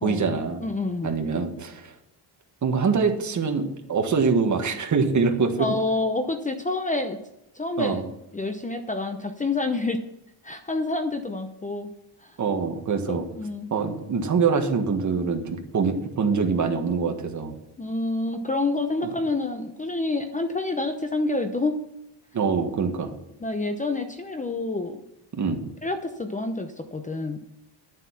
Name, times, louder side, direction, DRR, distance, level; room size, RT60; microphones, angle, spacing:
voice 1, 0.0-0.6 1.0-1.9 2.6-5.6 7.8-8.1 12.4-13.2 13.7-17.5 19.0-19.1 22.3-23.1 25.4-25.6, right 5 dB, 40° right, 5 dB, 1.6 m, -24 dB
voice 2, 0.6-1.1 5.6-7.2 7.5-8.0 8.3-10.0 10.4-11.9 12.2-12.4 13.1-13.7 17.8-21.8 23.4-25.0 25.8-27.4, left 2 dB, 15° left, 7 dB, 0.8 m, -28 dB
11.5 x 7.4 x 5.8 m, 0.85 s
cardioid pair, 130°, 44 cm